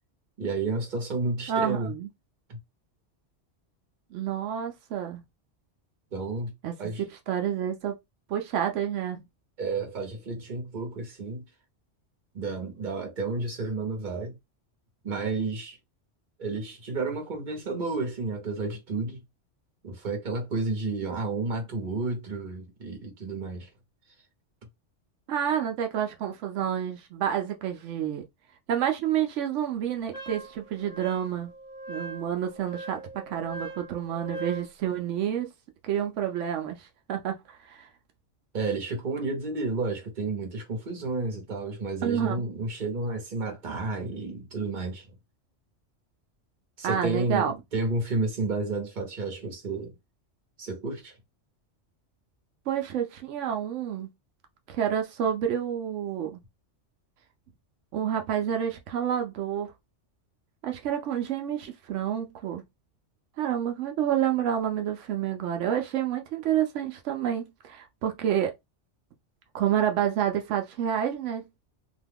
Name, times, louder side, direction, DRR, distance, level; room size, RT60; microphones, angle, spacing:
voice 1, 0.4-1.9 2.5-2.6 6.1-7.0 9.6-11.4 12.3-14.4 15.0-15.8 16.4-19.2 19.8-23.7 38.5-45.1 46.8-49.9 50.6-51.1, right 3 dB, 45° right, 1.1 m, -31 dB
voice 2, 1.5-2.1 4.1-5.2 6.6-7.9 8.3-9.2 25.3-28.2 28.7-31.5 31.9-33.0 33.3-35.5 35.8-37.9 42.0-42.4 46.8-47.5 52.7-54.1 54.7-56.4 57.9-59.7 60.6-62.6 63.4-68.5 69.5-71.5, right 9 dB, 85° right, 0.9 m, -29 dB
Wind instrument woodwind instrument, 30.1-34.7, right 2 dB, 35° left, 0.9 m, -41 dB
2.7 x 2.3 x 3.4 m
omnidirectional pair, 1.2 m